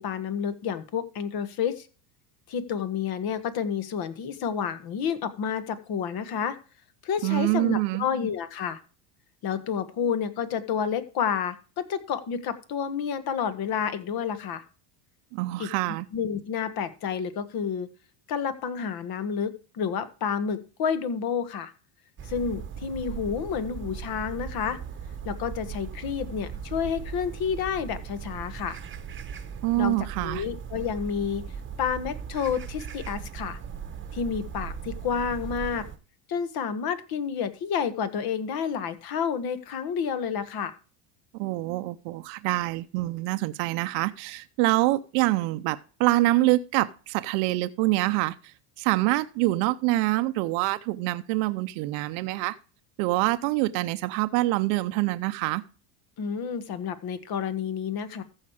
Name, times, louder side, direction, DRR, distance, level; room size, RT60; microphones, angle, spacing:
voice 1, 0.0-1.9 2.5-6.6 7.0-8.8 9.4-14.6 15.6-15.7 16.1-17.9 18.3-21.7 22.2-24.8 25.2-28.8 29.8-30.0 30.2-31.4 31.8-33.6 34.1-35.8 36.3-40.7 56.2-58.2, left 7 dB, 45° left, 1.5 m, -30 dB
voice 2, 7.2-8.0 15.3-16.1 29.6-30.4 41.4-48.5 48.8-52.6 53.0-55.6, right 19 dB, 65° right, 0.8 m, -25 dB
sound 1, 22.2-36.0, right 7 dB, 25° right, 1.1 m, -38 dB
14.5 x 4.9 x 4.8 m
supercardioid pair, 110°, 49 cm